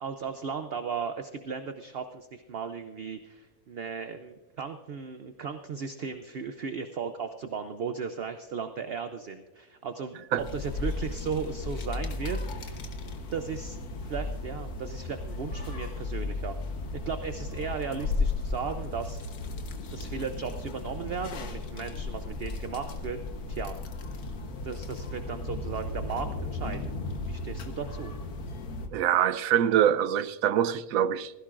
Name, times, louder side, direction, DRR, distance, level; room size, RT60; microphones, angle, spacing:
voice 1, 0.0-10.3 10.5-12.8 13.3-13.8 14.0-16.6 17.1-19.2 19.9-23.2 23.5-23.7 24.6-27.0 27.3-28.1, right 6 dB, 55° right, 0.7 m, -36 dB
sound 1, 10.4-28.9, left 3 dB, 75° left, 1.6 m, -35 dB
voice 2, 28.9-31.4, right 10 dB, 70° right, 1.0 m, -24 dB
16.5 x 16.0 x 2.5 m
omnidirectional pair, 1.6 m